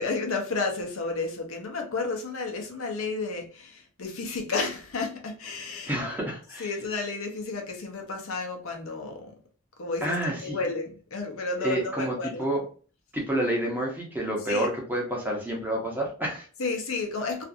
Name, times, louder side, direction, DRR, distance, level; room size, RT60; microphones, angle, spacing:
voice 1, 0.0-6.0 6.6-9.4 9.8-12.5 14.5-14.7 16.6-17.4, left 3 dB, 75° left, 0.7 m, -32 dB
voice 2, 5.9-6.7 10.0-10.6 11.6-12.1 12.4-12.6 13.1-16.5, right 1 dB, 10° right, 0.7 m, -29 dB
2.5 x 2.4 x 2.5 m
head